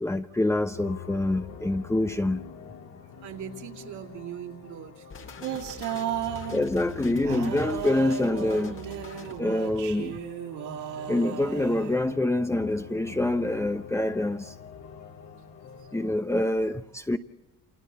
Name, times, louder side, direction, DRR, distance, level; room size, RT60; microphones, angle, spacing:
voice 1, 0.0-2.4 6.5-8.8 9.4-10.2 11.0-14.5 15.9-17.2, left 1 dB, 10° left, 0.8 m, -26 dB
sound 1, 0.7-16.2, left 8 dB, 80° left, 3.1 m, -45 dB
voice 2, 3.2-5.1 5.5-5.7 10.9-11.1 15.8-15.9, right 8 dB, 65° right, 3.1 m, -41 dB
sound 2, 5.1-9.4, left 5 dB, 40° left, 1.9 m, -45 dB
sound 3, 5.4-6.6 7.2-12.2, right 9 dB, 90° right, 5.7 m, -35 dB
29.0 x 28.5 x 4.2 m
cardioid pair, 125°, 32 cm